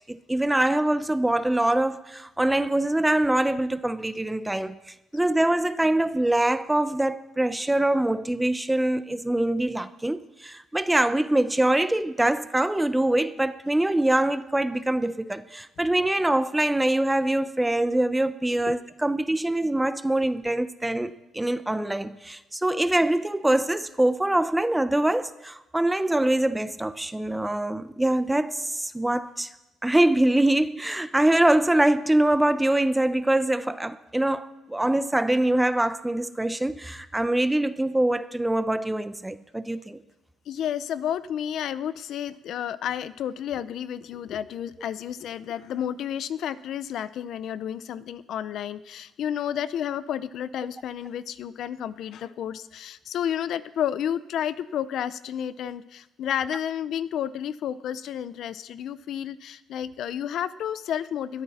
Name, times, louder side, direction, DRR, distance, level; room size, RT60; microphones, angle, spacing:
voice 1, 0.1-29.5 29.8-40.0, right 1 dB, 5° right, 0.6 m, -24 dB
voice 2, 40.5-61.4, left 9 dB, 65° left, 0.7 m, -31 dB
21.0 x 15.5 x 4.3 m
cardioid pair, 145°, 0 cm